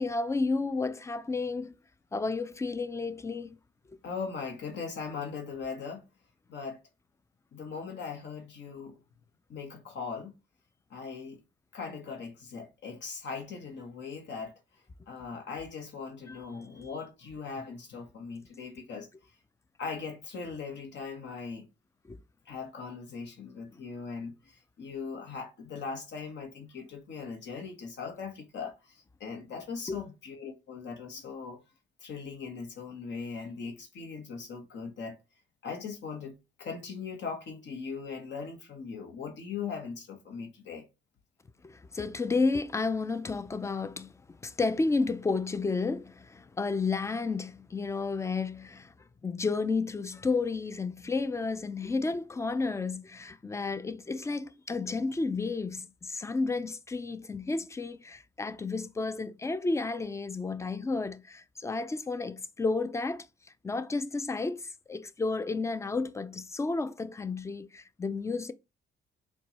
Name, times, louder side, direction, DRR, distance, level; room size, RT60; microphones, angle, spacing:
voice 1, 0.0-1.8 2.1-3.6 16.3-16.4 22.1-22.2 29.9-30.0 41.6-44.1 44.4-48.9 49.2-63.3 63.6-68.5, left 3 dB, 15° left, 0.3 m, -32 dB
voice 2, 4.0-6.1 6.5-6.8 7.5-9.0 9.5-10.3 10.9-11.4 11.7-14.5 15.1-19.1 19.8-21.7 22.5-31.6 32.0-35.2 35.6-40.8, left 5 dB, 65° left, 1.0 m, -39 dB
4.3 x 2.2 x 2.9 m
cardioid pair, 90°, 20 cm